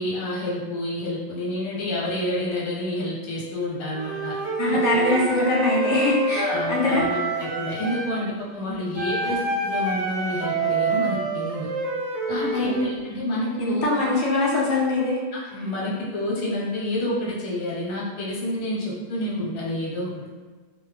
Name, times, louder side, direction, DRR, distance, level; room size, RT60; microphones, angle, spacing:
voice 1, 0.0-4.3 4.7-5.6 6.4-11.7 12.3-14.1 15.3-20.1, left 1 dB, 85° left, -5 dB, 1.4 m, -29 dB
Wind instrument woodwind instrument, 3.9-8.2 8.9-12.8, right 3 dB, 70° right, 0.8 m, -27 dB
voice 2, 4.6-7.0 12.4-12.8 13.6-15.2, left 2 dB, 65° left, -3 dB, 0.7 m, -23 dB
2.6 x 2.2 x 3.2 m, 1.3 s
omnidirectional pair, 1.6 m